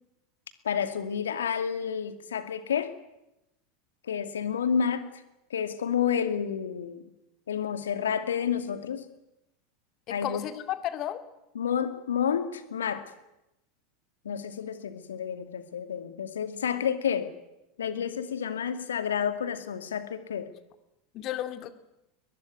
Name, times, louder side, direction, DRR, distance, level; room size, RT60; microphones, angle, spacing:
voice 1, 0.6-2.9 4.1-5.1 5.5-7.0 7.5-9.1 10.1-10.4 11.5-13.0 14.2-17.3 17.8-20.5, left 7 dB, 70° left, 10 dB, 2.3 m, -30 dB
voice 2, 10.1-11.2 21.1-21.7, left 12 dB, 45° left, 10 dB, 2.4 m, -33 dB
22.5 x 21.5 x 9.5 m, 0.92 s
figure-of-eight pair, 80°, 0 cm